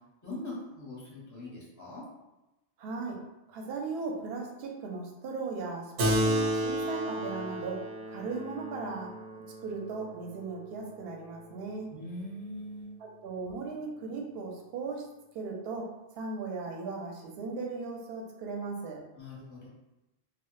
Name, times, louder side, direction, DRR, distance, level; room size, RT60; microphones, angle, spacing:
voice 1, 0.2-2.0 11.9-13.0 19.2-19.7, left 1 dB, 20° left, -6 dB, 0.6 m, -41 dB
voice 2, 2.8-3.2 3.5-7.8 8.1-9.1 9.6-11.9 13.0-15.0 15.3-15.8 16.2-19.0, right 4 dB, 65° right, 0 dB, 0.7 m, -37 dB
Keyboard (musical), 6.0-10.9, right 1 dB, 90° right, 0.9 m, -32 dB
2.1 x 2.0 x 3.0 m, 0.99 s
omnidirectional pair, 1.2 m